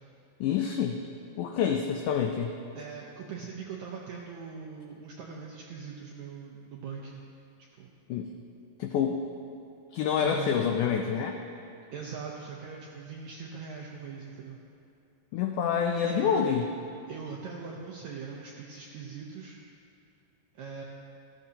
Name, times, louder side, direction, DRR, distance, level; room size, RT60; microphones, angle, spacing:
voice 1, 0.4-1.0 1.4-2.6 8.1-8.3 8.8-9.2 9.9-11.4 15.3-16.7, left 7 dB, 80° left, 3 dB, 1.8 m, -27 dB
voice 2, 2.8-7.3 7.8-7.9 10.2-10.6 11.9-14.6 16.0-16.5 17.1-19.6 20.5-20.8, right 6 dB, 80° right, -1 dB, 1.6 m, -41 dB
14.5 x 14.0 x 2.8 m, 2.8 s
omnidirectional pair, 4.2 m